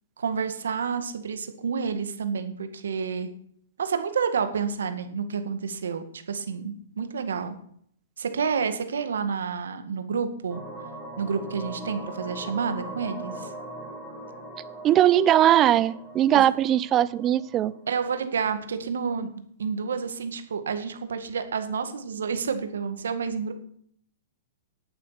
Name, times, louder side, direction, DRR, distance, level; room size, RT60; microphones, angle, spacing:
voice 1, 0.2-3.3 3.8-7.5 8.2-10.6 11.2-13.5 16.3-16.4 17.9-19.3 19.6-23.5, right 6 dB, 85° right, 9 dB, 1.8 m, -29 dB
sound 1, 10.5-18.1, right 1 dB, ahead, 3.7 m, -40 dB
voice 2, 14.8-17.7, right 11 dB, 25° right, 17 dB, 0.6 m, -20 dB
10.5 x 9.0 x 5.8 m, 0.65 s
hypercardioid pair, 135°, 0 cm